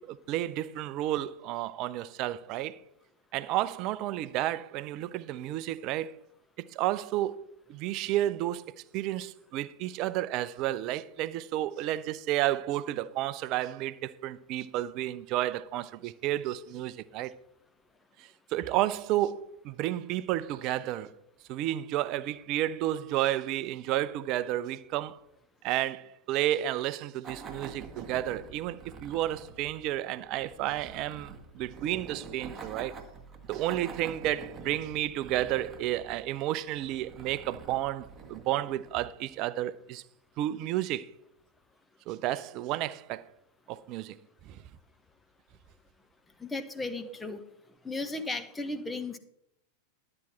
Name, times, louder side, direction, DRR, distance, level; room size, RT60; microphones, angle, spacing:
voice 1, 0.0-2.8 3.3-6.2 6.6-7.4 7.7-8.6 8.9-17.3 18.2-21.1 21.5-25.2 25.6-33.0 33.5-40.0 40.4-41.1 42.1-43.3 43.7-44.2 44.5-44.6, right 14 dB, 40° right, 0.6 m, -31 dB
sound 1, 27.2-39.4, right 5 dB, 20° right, 1.6 m, -47 dB
voice 2, 46.4-47.4 47.8-49.2, left 2 dB, 10° left, 1.0 m, -35 dB
12.5 x 8.7 x 4.5 m
figure-of-eight pair, 90°, 0 cm